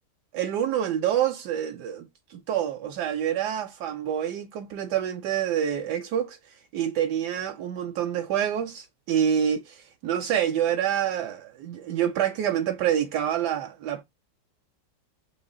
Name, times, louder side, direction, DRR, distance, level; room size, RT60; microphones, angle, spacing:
voice 1, 0.3-6.4 6.7-14.0, right 9 dB, 75° right, 1.1 m, -27 dB
4.9 x 2.7 x 2.5 m
omnidirectional pair, 1.9 m